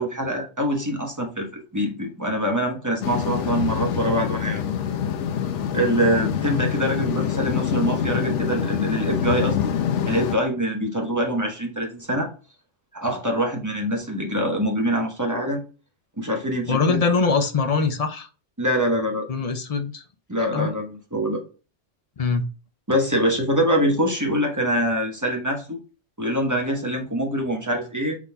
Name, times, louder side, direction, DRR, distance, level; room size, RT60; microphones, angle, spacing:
voice 1, 0.0-1.5 1.7-4.6 5.7-9.7 10.0-12.3 12.9-15.6 16.2-17.0 18.6-19.2 20.3-21.4 22.9-25.8 26.2-28.2, equal, 15° right, 1 dB, 1.0 m, -24 dB
sound 1, 3.0-10.4, left 8 dB, 85° left, 1.0 m, -25 dB
voice 2, 16.7-18.3 19.3-20.0 20.4-20.7 22.2-22.5, left 4 dB, 45° left, 7 dB, 0.5 m, -23 dB
5.9 x 4.0 x 2.2 m, 0.35 s
omnidirectional pair, 1.2 m